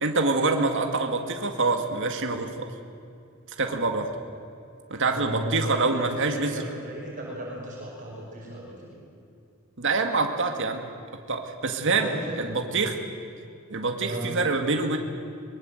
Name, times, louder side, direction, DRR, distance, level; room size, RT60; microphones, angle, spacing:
voice 1, 0.0-2.7 3.6-4.1 4.9-6.6 9.8-10.8 11.3-12.1 12.4-13.0 13.7-15.0, right 3 dB, 60° right, 5 dB, 2.0 m, -25 dB
voice 2, 5.1-9.0 11.8-12.8 14.0-14.3, right 1 dB, 40° right, -3 dB, 5.7 m, -35 dB
23.5 x 22.5 x 7.8 m, 2.5 s
head